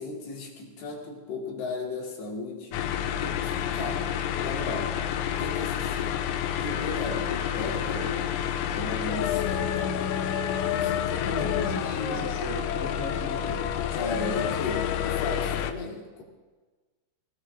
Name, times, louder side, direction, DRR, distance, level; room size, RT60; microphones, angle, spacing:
voice 1, 0.0-2.8 3.2-4.1 4.3-4.9 5.4-6.2 6.6-8.3 8.7-10.3 10.7-12.2 14.0-16.2, left 3 dB, 65° left, -2 dB, 4.1 m, -36 dB
sound 1, 2.7-15.7, left 9 dB, 90° left, 3.0 m, -29 dB
voice 2, 11.2-13.7, left 1 dB, 40° left, -8 dB, 3.5 m, -37 dB
25.0 x 18.0 x 2.8 m, 1.3 s
omnidirectional pair, 5.3 m